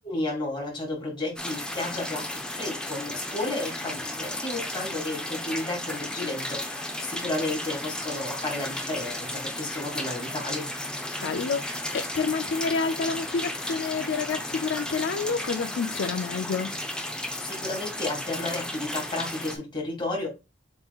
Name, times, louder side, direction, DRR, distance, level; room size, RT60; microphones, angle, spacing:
voice 1, 0.0-10.7 17.4-20.3, left 2 dB, 25° left, 1.8 m, -32 dB
sound 1, 1.4-19.6, left 1 dB, 5° left, 0.5 m, -34 dB
voice 2, 11.2-16.7, left 5 dB, 75° left, 0.4 m, -29 dB
7.3 x 3.0 x 2.3 m
head